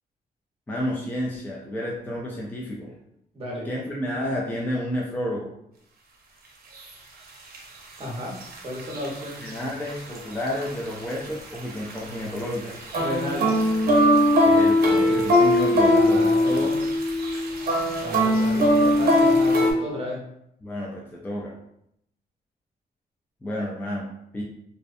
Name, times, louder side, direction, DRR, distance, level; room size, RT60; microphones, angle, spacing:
voice 1, 0.7-2.9 3.6-5.5 9.4-12.9 14.4-16.7 20.6-21.5 23.4-24.1 24.3-24.4, left 1 dB, 10° left, -3 dB, 0.3 m, -31 dB
voice 2, 3.3-3.7 8.0-8.3 8.6-9.4 13.0-13.7 15.9-16.8 18.0-20.2, left 1 dB, 35° right, -2 dB, 0.8 m, -32 dB
sound 1, 6.7-6.8 7.5-7.6 8.4-9.6 9.9-10.2 10.5-12.0 12.4-19.7, left 1 dB, 70° right, 0.6 m, -20 dB
2.6 x 2.0 x 2.5 m, 0.77 s
wide cardioid pair, 130°, 16 cm